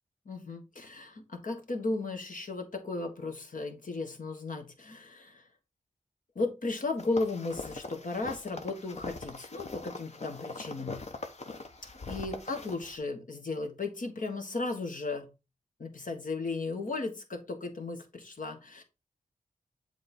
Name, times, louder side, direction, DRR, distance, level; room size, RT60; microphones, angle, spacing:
voice 1, 0.2-5.4 6.3-11.0 12.1-15.3 15.8-18.8, left 3 dB, 70° left, 4 dB, 1.5 m, -35 dB
sound 1, 7.0-13.0, left 3 dB, 50° left, 1.0 m, -42 dB
7.7 x 3.2 x 4.3 m, 0.28 s
cardioid pair, 50°, 14 cm